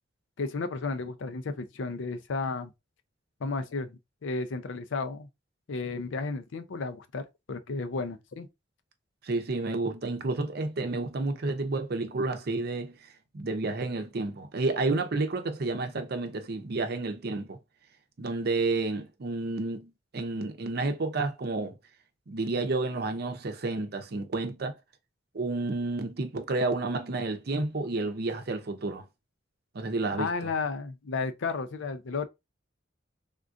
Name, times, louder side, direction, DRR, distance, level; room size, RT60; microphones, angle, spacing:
voice 1, 0.4-2.7 3.4-5.3 5.7-7.2 7.5-8.5 30.2-32.3, left 4 dB, 75° left, 0.5 m, -33 dB
voice 2, 9.2-13.1 13.3-17.6 18.2-21.8 22.3-24.7 25.3-29.0 29.7-30.5, right 3 dB, 55° right, 0.6 m, -30 dB
3.6 x 2.4 x 2.5 m
head